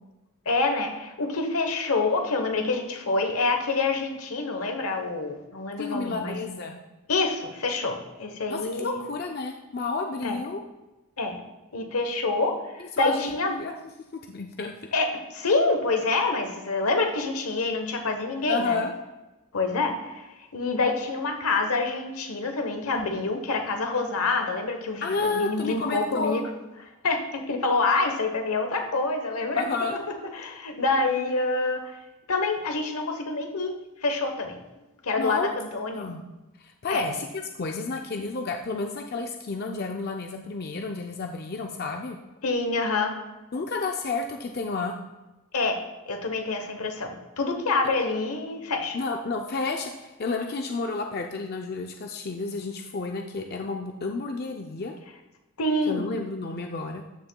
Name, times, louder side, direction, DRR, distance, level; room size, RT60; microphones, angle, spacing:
voice 1, 0.5-6.4 7.1-9.0 10.2-10.4 11.2-11.4 11.7-13.6 14.9-18.8 19.5-26.4 27.0-29.6 30.4-31.9 32.3-33.7 34.0-34.6 35.0-36.0 36.9-37.1 42.4-43.1 45.5-45.8 46.1-49.0 55.6-56.1, left 3 dB, 80° left, 5 dB, 1.0 m, -27 dB
voice 2, 5.8-6.8 8.5-10.6 12.8-13.7 14.3-14.7 18.5-18.9 25.0-26.5 29.6-30.0 35.2-35.6 35.9-36.3 36.6-42.2 43.5-44.9 48.9-54.9 55.9-57.0, left 3 dB, 45° left, 3 dB, 0.4 m, -31 dB
13.0 x 6.6 x 2.3 m, 1.1 s
head